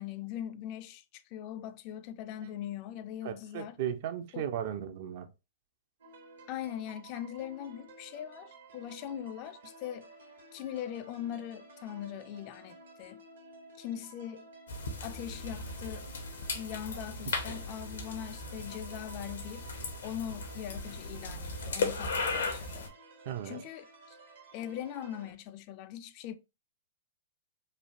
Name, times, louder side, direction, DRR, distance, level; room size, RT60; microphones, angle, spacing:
voice 1, 0.0-3.8 4.3-4.4 6.5-10.1 10.5-13.2 13.8-14.5 15.0-16.1 16.5-19.7 20.0-22.9 23.4-24.2 24.5-26.3, left 11 dB, 45° left, 0.3 m, -41 dB
voice 2, 3.2-5.3 23.3-23.6, right 10 dB, 50° right, 0.5 m, -36 dB
sound 1, 6.0-25.3, right 3 dB, 70° right, 1.0 m, -54 dB
sound 2, 14.7-22.9, left 3 dB, 75° left, 0.7 m, -37 dB
3.2 x 2.2 x 2.5 m
hypercardioid pair, 110°, 0 cm